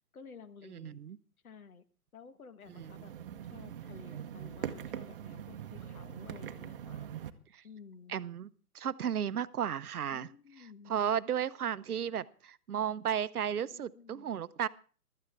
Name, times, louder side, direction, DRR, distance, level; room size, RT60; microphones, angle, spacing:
voice 1, 0.1-1.0 1.4-1.8 2.1-3.1 3.4-7.1 7.6-8.2 10.1-10.9 13.6-14.3, left 6 dB, 65° left, 12 dB, 1.4 m, -53 dB
voice 2, 0.7-1.2 2.8-3.0 7.5-7.6 8.1-8.5 8.7-10.3 10.9-14.7, right 9 dB, 70° right, 16 dB, 0.8 m, -34 dB
sound 1, 2.7-7.3, right 9 dB, 35° right, 0.9 m, -42 dB
16.0 x 13.0 x 3.5 m, 0.40 s
figure-of-eight pair, 140°, 46 cm